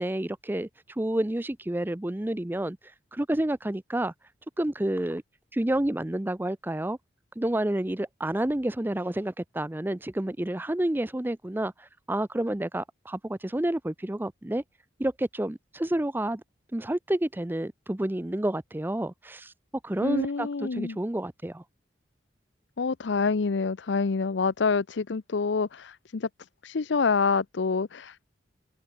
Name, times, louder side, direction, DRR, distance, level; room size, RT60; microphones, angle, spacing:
voice 1, 0.0-2.8 3.1-4.1 4.6-5.2 5.5-7.0 7.4-14.6 15.0-16.4 16.7-19.5 19.8-21.6, right 1 dB, 10° right, 0.5 m, -29 dB
voice 2, 20.0-21.0 22.8-26.3 26.6-28.3, left 4 dB, 75° left, 0.6 m, -27 dB
head